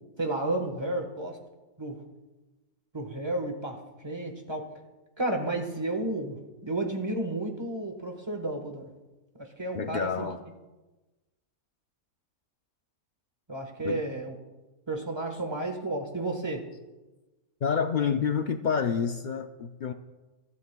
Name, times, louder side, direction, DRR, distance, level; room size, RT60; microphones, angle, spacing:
voice 1, 0.2-1.4 1.8-2.0 2.9-4.7 5.2-8.9 9.6-10.3 13.5-14.3 14.9-16.6, right 2 dB, 20° right, 3 dB, 1.2 m, -32 dB
voice 2, 9.7-10.4 13.8-14.0 17.6-19.9, left 6 dB, 80° left, 6 dB, 0.4 m, -28 dB
24.5 x 12.5 x 2.3 m, 1.1 s
omnidirectional pair, 1.6 m